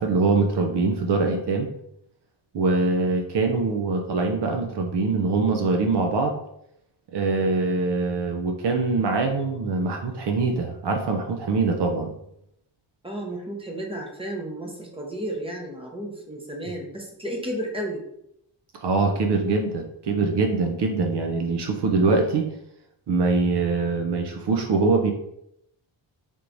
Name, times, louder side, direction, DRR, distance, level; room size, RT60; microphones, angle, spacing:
voice 1, 0.0-1.7 2.5-6.4 7.1-12.1 18.7-22.5 23.1-25.1, right 3 dB, 60° right, 3 dB, 0.5 m, -23 dB
voice 2, 13.0-18.0, right 1 dB, 10° right, 0 dB, 0.7 m, -33 dB
3.5 x 3.0 x 2.6 m, 0.78 s
wide cardioid pair, 115°, 46 cm